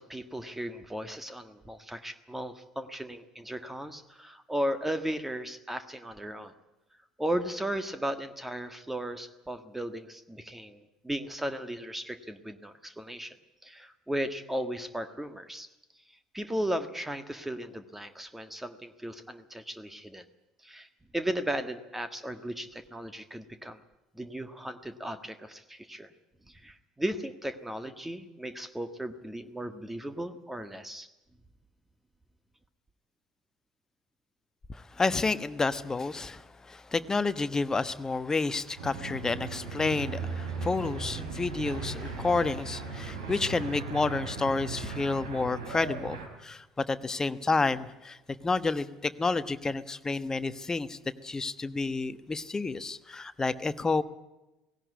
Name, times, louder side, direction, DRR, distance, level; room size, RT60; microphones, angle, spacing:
voice 1, 0.0-6.5 7.2-13.4 13.6-15.7 16.3-20.2 20.6-20.9 21.1-23.8 24.2-26.1 26.5-31.1, right 1 dB, 5° right, 10 dB, 1.6 m, -36 dB
voice 2, 34.7-48.2 48.4-54.0, left 3 dB, 20° left, 13 dB, 1.2 m, -30 dB
sound 1, 38.8-46.3, right 4 dB, 75° right, 4.1 m, -37 dB
18.0 x 17.0 x 9.5 m, 0.99 s
figure-of-eight pair, 65°, 3 cm